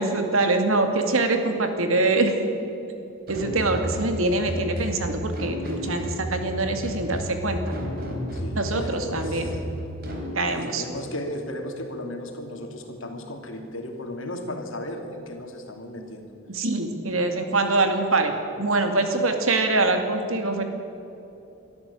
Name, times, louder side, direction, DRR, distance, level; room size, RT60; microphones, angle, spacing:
voice 1, 0.0-2.3 3.3-7.8 8.5-9.5 10.3-10.8 16.5-20.6, right 2 dB, 85° right, 6 dB, 2.5 m, -24 dB
sound 1, 3.3-10.3, equal, 45° right, 3.6 m, -32 dB
voice 2, 8.3-9.6 10.4-16.3 19.1-19.2, left 1 dB, 75° left, 4 dB, 2.8 m, -35 dB
23.0 x 13.0 x 8.5 m, 3.0 s
head